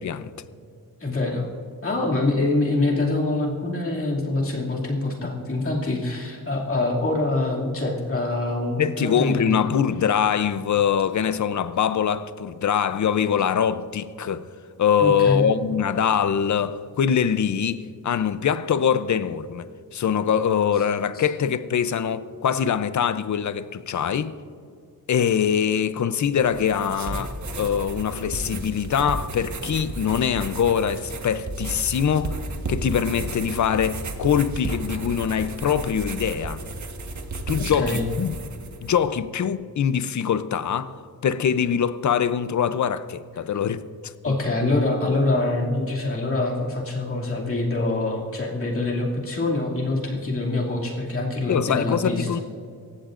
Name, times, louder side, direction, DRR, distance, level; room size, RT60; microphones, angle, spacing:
voice 1, 0.0-0.3 8.8-14.5 14.8-19.7 19.9-24.4 25.1-32.4 32.7-36.6 37.5-38.3 38.8-44.4 51.5-52.4, left 8 dB, 55° left, 0.6 m, -23 dB
voice 2, 1.0-1.5 1.8-9.6 15.0-15.5 21.1-21.2 37.6-38.1 44.2-52.4, left 2 dB, 40° left, 2.5 m, -25 dB
sound 1, 26.3-39.0, right 2 dB, 50° right, 1.4 m, -33 dB
27.0 x 15.0 x 2.5 m
wide cardioid pair, 170°, 36 cm